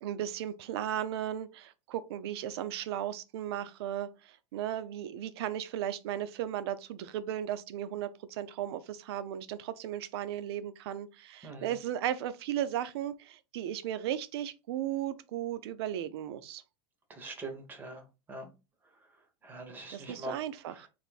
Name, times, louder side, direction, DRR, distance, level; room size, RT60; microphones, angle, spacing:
voice 1, 0.0-16.6 19.9-20.9, right 11 dB, 55° right, 0.5 m, -36 dB
voice 2, 17.1-18.0 18.3-18.5 19.4-20.4 20.7-20.9, right 1 dB, 10° right, 0.7 m, -43 dB
3.4 x 2.6 x 4.0 m
supercardioid pair, 170°, 16 cm